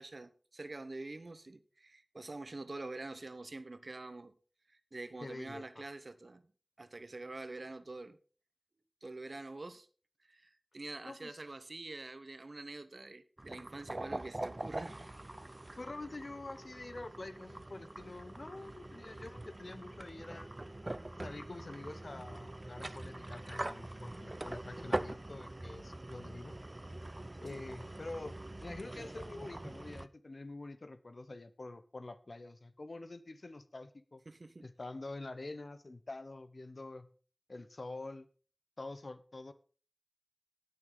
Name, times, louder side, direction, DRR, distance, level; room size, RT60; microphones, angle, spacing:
voice 1, 0.0-4.4 4.7-6.4 6.8-8.2 9.0-9.9 10.2-15.0 27.5-27.6 34.3-34.7, right 2 dB, 75° right, 0.9 m, -46 dB
voice 2, 5.2-5.8 11.0-11.4 15.8-20.5 21.2-26.5 27.4-28.3 28.6-34.2 34.6-37.1 37.5-38.3 38.8-39.5, left 2 dB, 75° left, 0.9 m, -46 dB
sound 1, 13.4-30.1, right 1 dB, 45° right, 0.5 m, -43 dB
18.5 x 6.7 x 3.9 m
wide cardioid pair, 45°, 0 cm